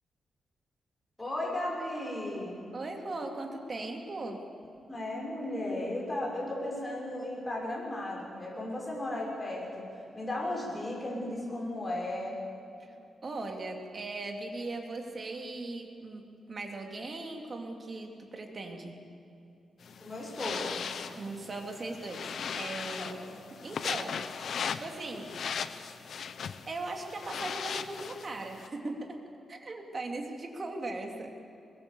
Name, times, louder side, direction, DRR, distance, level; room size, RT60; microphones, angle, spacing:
voice 1, 1.2-2.6 4.9-12.4 20.0-20.8 23.0-23.1, left 1 dB, 15° left, -3 dB, 6.4 m, -35 dB
voice 2, 2.7-4.5 12.9-13.0 13.2-19.0 21.2-24.3 24.8-25.4 26.7-31.4, right 2 dB, 40° right, 3 dB, 2.9 m, -39 dB
sound 1, 19.8-28.7, left 7 dB, 65° left, 0.9 m, -38 dB
22.0 x 21.5 x 7.1 m, 2.7 s
wide cardioid pair, 120°, 0 cm